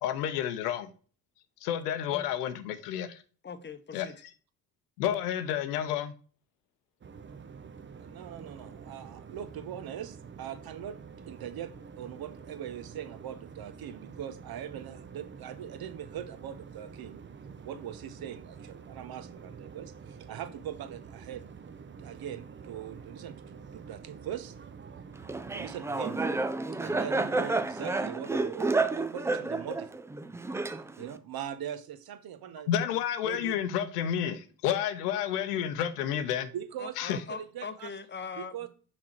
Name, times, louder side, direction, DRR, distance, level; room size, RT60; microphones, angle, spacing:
voice 1, 0.0-0.9 1.6-3.2 3.9-4.1 5.0-6.1 32.7-36.5 37.0-37.2, left 10 dB, 70° left, 0.8 m, -30 dB
voice 2, 3.4-4.2 36.8-38.7, left 5 dB, 20° left, 0.9 m, -41 dB
sound 1, 7.0-25.8, right 6 dB, 25° right, 0.8 m, -48 dB
voice 3, 8.0-11.0 11.3-11.7 12.0-17.2 17.6-21.4 22.0-24.5 25.5-26.3 26.8-29.9 31.0-32.7 33.2-33.6 36.5-37.9 38.4-38.7, right 10 dB, 45° right, 1.1 m, -41 dB
Laughter, 25.3-31.2, right 3 dB, 5° right, 0.3 m, -30 dB
6.1 x 5.8 x 4.4 m
figure-of-eight pair, 50°, 48 cm